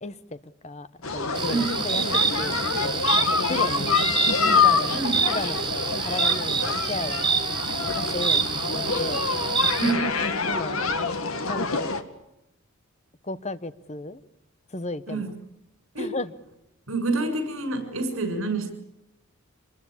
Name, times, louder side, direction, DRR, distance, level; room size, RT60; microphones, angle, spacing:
voice 1, 0.0-0.9 1.1-2.0 2.4-3.9 4.5-7.3 7.8-9.3 10.4-10.8 11.5-11.9 13.2-14.2 14.7-15.2 16.0-16.3, left 2 dB, 30° left, 13 dB, 1.0 m, -34 dB
sound 1, 1.0-12.0, left 5 dB, 75° left, 1.9 m, -26 dB
sound 2, 1.3-9.9, right 5 dB, 20° right, 1.2 m, -27 dB
voice 2, 9.8-10.1 15.1-15.3 15.9-16.1 16.9-18.7, right 3 dB, 70° right, 7 dB, 6.7 m, -27 dB
26.0 x 20.5 x 8.6 m, 0.85 s
head